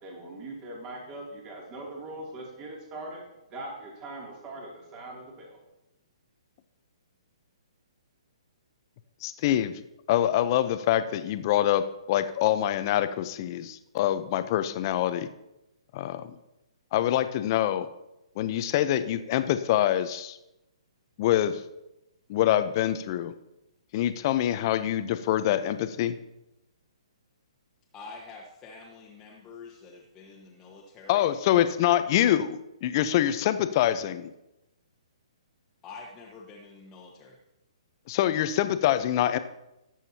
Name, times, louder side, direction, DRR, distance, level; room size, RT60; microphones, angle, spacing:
voice 1, 0.0-3.2 3.5-5.6, right 2 dB, 25° right, -2 dB, 2.8 m, -41 dB
voice 2, 9.2-9.7 10.1-15.3 15.9-16.3 16.9-17.9 18.4-20.4 21.2-21.5 22.3-23.3 23.9-26.2 31.1-34.3 38.1-39.4, left 12 dB, 40° left, 11 dB, 0.7 m, -25 dB
voice 3, 27.9-31.4 35.8-37.4, left 4 dB, 20° left, -3 dB, 1.4 m, -46 dB
19.0 x 7.4 x 2.9 m, 0.91 s
hypercardioid pair, 135°, 3 cm